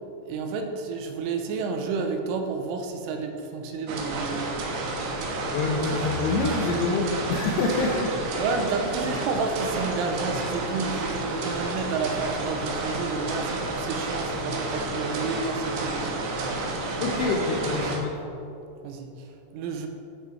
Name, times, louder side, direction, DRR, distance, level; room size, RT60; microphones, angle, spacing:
voice 1, 0.3-4.4 8.4-16.2 18.8-19.1 19.5-19.9, right 4 dB, 85° right, 4 dB, 3.2 m, -30 dB
sound 1, 3.9-18.0, right 2 dB, 70° right, 2.8 m, -30 dB
voice 2, 5.5-8.1 17.0-18.1, left 3 dB, 80° left, -1 dB, 2.4 m, -26 dB
12.5 x 6.2 x 4.5 m, 2.8 s
omnidirectional pair, 5.6 m